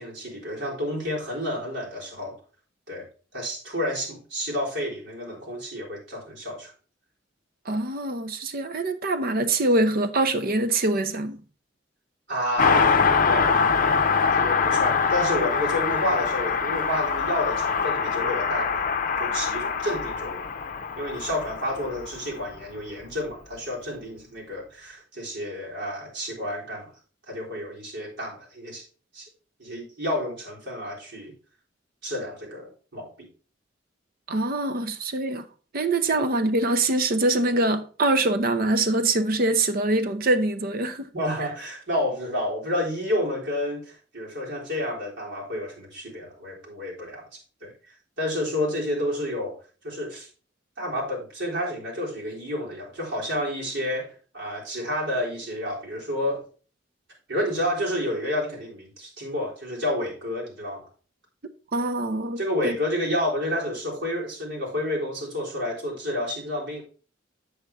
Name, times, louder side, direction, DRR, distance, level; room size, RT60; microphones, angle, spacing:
voice 1, 0.0-2.4 2.9-3.1 3.3-6.7 12.3-13.5 13.8-14.0 14.4-18.9 19.2-20.5 21.0-26.9 27.3-28.8 29.1-29.3 29.6-31.3 32.0-33.3 41.1-47.2 47.6-49.6 49.8-50.3 50.8-56.4 57.3-60.9 62.4-66.8, left 1 dB, 80° right, 3.8 m, -30 dB
voice 2, 7.7-11.4 34.3-35.4 35.7-41.1 61.7-62.8, right 2 dB, 50° right, 0.7 m, -24 dB
Car passing by, 12.6-22.5 22.8-22.9, left 5 dB, 45° left, 0.6 m, -24 dB
7.9 x 6.9 x 3.5 m
head